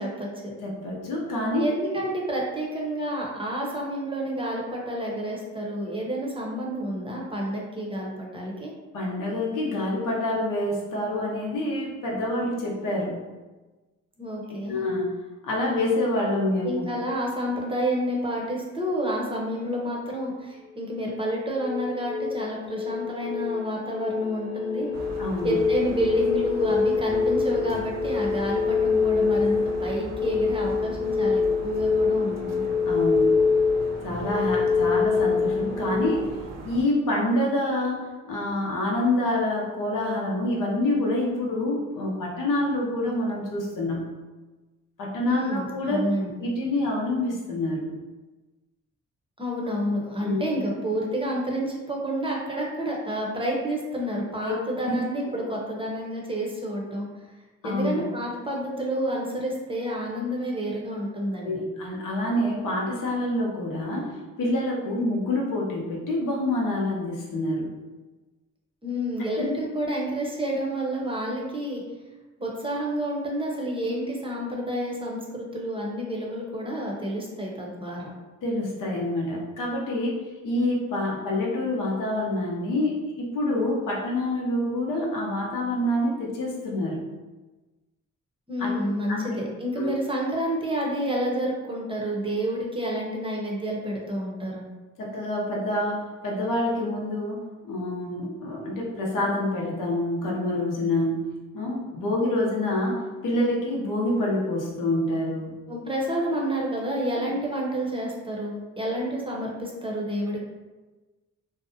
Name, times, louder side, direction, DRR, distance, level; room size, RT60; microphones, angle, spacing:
voice 1, 0.0-0.5 1.6-8.7 14.2-14.8 16.6-24.9 25.4-32.7 45.3-46.3 49.4-57.1 57.6-61.6 68.8-71.8 72.4-78.1 88.5-94.7 105.7-110.4, equal, 15° right, -2 dB, 0.7 m, -29 dB
voice 2, 0.6-1.7 8.9-13.2 14.5-15.1 15.4-16.8 25.2-25.6 32.8-33.4 34.0-36.4 36.6-44.1 45.0-46.0 46.4-47.9 50.2-50.4 54.4-54.5 54.9-55.0 55.2-55.4 57.6-58.0 61.4-67.7 69.4-69.5 78.4-87.1 88.6-89.4 89.8-89.9 95.0-105.5, left 1 dB, 80° left, -3 dB, 0.7 m, -27 dB
sound 1, 21.1-36.2, left 5 dB, 45° left, 0.6 m, -25 dB
sound 2, 24.9-36.8, right 1 dB, 55° right, 0.5 m, -40 dB
2.6 x 2.1 x 2.6 m, 1.2 s
cardioid pair, 65°, 32 cm